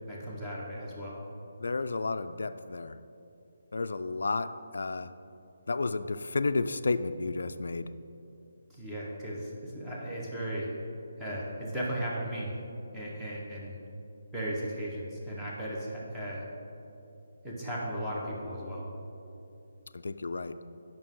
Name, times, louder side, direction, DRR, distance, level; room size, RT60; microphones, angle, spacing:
voice 1, 0.1-1.2 8.7-10.7 11.2-12.5 12.9-13.8 14.3-16.5 17.4-18.9, right 1 dB, 5° right, -7 dB, 1.0 m, -36 dB
voice 2, 1.6-3.0 3.7-5.1 5.7-7.9 19.9-20.6, left 3 dB, 75° left, 11 dB, 0.3 m, -32 dB
8.7 x 5.9 x 3.7 m, 2.8 s
hypercardioid pair, 170°, 0 cm